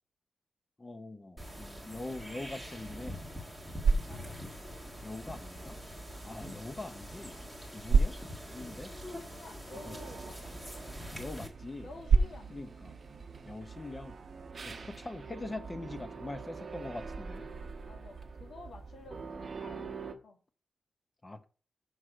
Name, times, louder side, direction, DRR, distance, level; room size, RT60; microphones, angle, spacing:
voice 1, 0.8-3.2 5.0-5.8 6.2-7.4 7.7-8.2 8.5-8.9 9.9-10.0 11.2-11.9 12.5-12.9 13.5-14.2 14.6-17.5 21.2-21.4, left 2 dB, 20° left, 0.9 m, -43 dB
sound 1, 1.4-11.5, equal, 5° left, 1.6 m, -44 dB
sound 2, 3.4-14.5, right 4 dB, 70° right, 0.6 m, -34 dB
voice 2, 4.1-4.4 9.3-10.5 11.8-12.5 17.8-20.4, left 3 dB, 75° left, 1.8 m, -51 dB
sound 3, 9.7-20.2, right 5 dB, 40° right, 1.0 m, -45 dB
6.4 x 6.2 x 4.9 m
wide cardioid pair, 160°, 0 cm